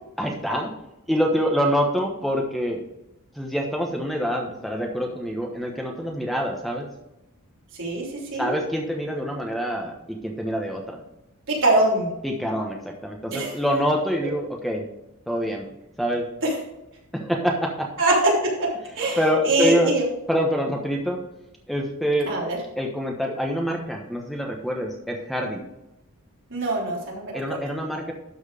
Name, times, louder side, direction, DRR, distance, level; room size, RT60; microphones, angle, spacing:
voice 1, 0.2-0.7 1.1-2.8 3.3-6.9 8.4-11.0 12.2-14.8 15.3-15.6 16.0-16.3 17.1-17.9 19.2-21.2 21.7-22.3 22.8-25.6 27.3-28.1, equal, ahead, 0 dB, 1.1 m, -26 dB
voice 2, 11.5-12.1 13.3-13.5 16.4-16.5 18.0-18.1 18.4-18.7 19.0-19.2 19.4-20.0 22.3-22.6 26.5-27.4, right 2 dB, 60° right, -4 dB, 3.6 m, -23 dB
12.0 x 4.6 x 5.0 m, 0.89 s
head